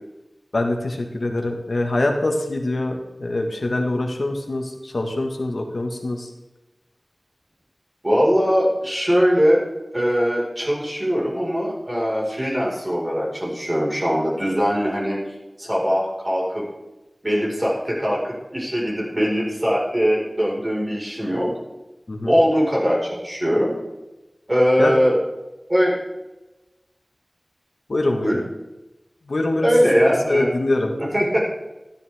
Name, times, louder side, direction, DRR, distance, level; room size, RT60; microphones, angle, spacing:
voice 1, 0.5-6.3 22.1-22.3 24.8-25.0 27.9-28.4 29.3-29.9 30.3-30.9, left 2 dB, 80° left, 2 dB, 1.5 m, -24 dB
voice 2, 8.0-9.6 9.9-15.2 15.6-16.7 17.2-21.6 22.2-23.7 24.5-25.2 25.7-26.0 28.2-28.4 29.6-30.5 31.0-31.4, equal, 30° right, -4 dB, 4.8 m, -21 dB
13.0 x 12.0 x 3.6 m, 1.0 s
wide cardioid pair, 55°, 0 cm